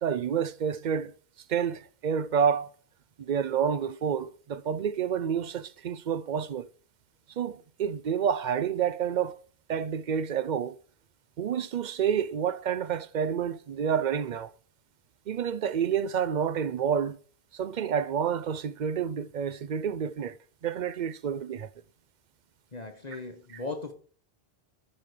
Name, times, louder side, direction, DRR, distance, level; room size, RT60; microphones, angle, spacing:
voice 1, 0.0-1.1 1.5-2.7 3.2-6.7 7.4-9.4 9.7-10.8 11.4-14.5 15.3-17.2 17.5-21.7, right 7 dB, 55° right, 0.6 m, -29 dB
voice 2, 22.7-23.9, left 3 dB, 40° left, 1.2 m, -37 dB
13.5 x 5.5 x 5.0 m
omnidirectional pair, 1.1 m